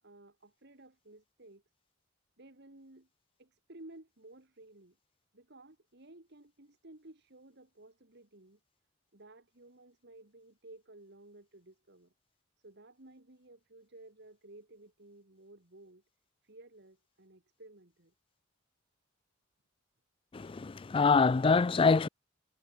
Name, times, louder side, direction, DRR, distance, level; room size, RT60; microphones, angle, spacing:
voice 1, 0.0-1.6 2.4-3.1 3.4-5.0 5.3-8.6 9.1-12.1 12.6-16.0 16.4-18.1, right 2 dB, 55° right, 2.4 m, -55 dB
voice 2, 20.3-22.1, left 4 dB, 25° left, 0.4 m, -25 dB
head